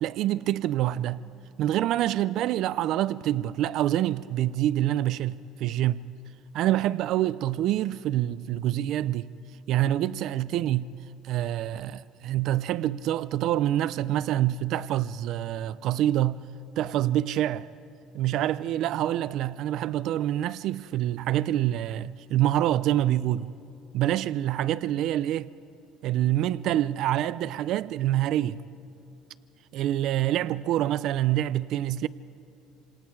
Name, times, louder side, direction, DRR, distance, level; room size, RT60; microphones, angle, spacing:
voice 1, 0.0-1.2 1.6-6.0 6.5-9.3 9.7-10.9 11.2-16.4 16.8-17.7 18.1-23.5 23.9-25.5 26.0-28.6 29.7-32.1, right 13 dB, 60° right, 0.4 m, -26 dB
27.5 x 26.0 x 4.7 m
cardioid pair, 130°, 0 cm